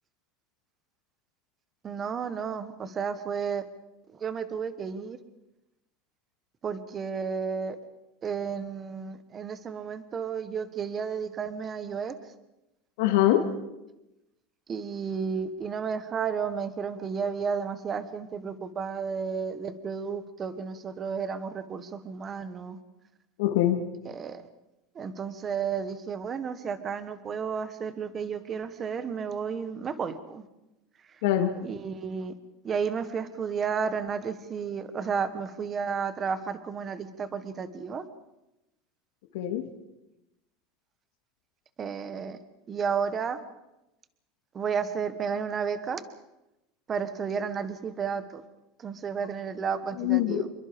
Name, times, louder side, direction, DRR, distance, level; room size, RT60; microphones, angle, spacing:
voice 1, 1.8-3.6 4.1-5.2 6.6-7.8 8.2-12.2 14.7-22.8 24.0-24.4 24.9-30.4 31.1-31.2 31.6-32.3 32.6-38.0 41.8-42.4 42.7-43.4 44.5-46.0 46.9-48.4 48.8-50.5, right 6 dB, 20° right, 12 dB, 1.2 m, -32 dB
voice 2, 13.0-13.5 23.4-23.8 31.2-31.5 39.3-39.7 50.0-50.4, left 13 dB, 70° left, 4 dB, 2.5 m, -23 dB
27.0 x 23.0 x 5.1 m, 0.93 s
supercardioid pair, 170°, 0 cm